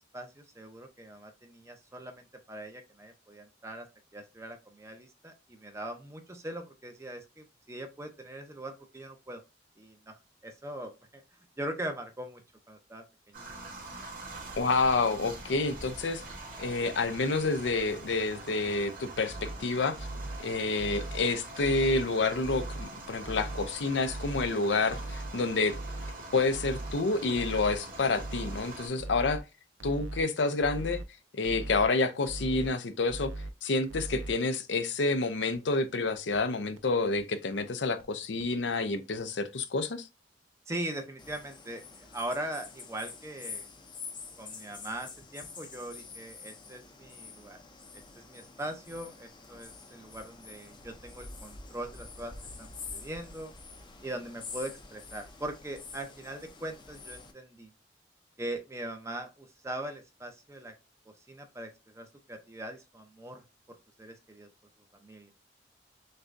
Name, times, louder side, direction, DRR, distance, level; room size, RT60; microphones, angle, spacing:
voice 1, 0.1-3.9 4.1-9.4 9.8-10.2 10.4-11.2 11.6-12.4 12.7-13.0 20.4-20.5 40.7-43.7 44.4-47.6 47.9-53.5 54.0-57.7 58.4-60.7 61.1-64.5 64.9-65.3, right 1 dB, 15° right, 0.6 m, -41 dB
sound 1, 13.3-28.9, right 2 dB, 45° right, 2.3 m, -44 dB
voice 2, 14.6-16.2 16.6-20.0 20.4-25.8 26.3-29.4 29.8-31.0 31.4-33.3 33.6-40.1, left 3 dB, 75° left, 0.6 m, -29 dB
sound 2, 19.1-19.6 20.0-20.4 20.8-21.2 21.6-22.0 22.4-22.8 23.2-23.7 24.1-24.5 24.9-25.3 25.7-26.1 26.5-26.9 27.3-27.8 28.2-28.6 29.0-29.4 29.8-30.2 30.6-31.1 31.4-31.9 32.3-32.7 33.1-33.5 33.9-34.3 34.7-34.8 35.1-35.2 35.5-35.6 36.0-36.1 36.3-36.4 36.8-36.9 37.2-37.3 37.6-37.7 38.0-38.1 38.4-38.5, right 1 dB, 90° right, 0.5 m, -39 dB
sound 3, 41.2-57.3, left 4 dB, 25° left, 0.6 m, -47 dB
6.4 x 2.3 x 2.5 m
head